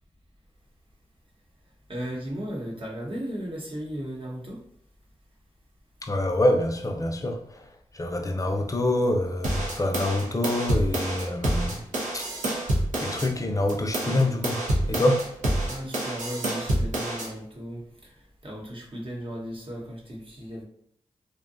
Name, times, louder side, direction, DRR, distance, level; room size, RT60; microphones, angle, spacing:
voice 1, 1.9-4.6 15.6-20.6, equal, 45° right, 0.9 m, -36 dB
voice 2, 6.0-7.4 7.9-11.8 12.1-12.3 13.0-15.3, left 1 dB, 25° left, 0.5 m, -26 dB
sound 1, 9.4-13.3 13.7-17.3, right 1 dB, 85° right, 0.6 m, -28 dB
2.6 x 2.2 x 2.5 m
cardioid pair, 50°, 12 cm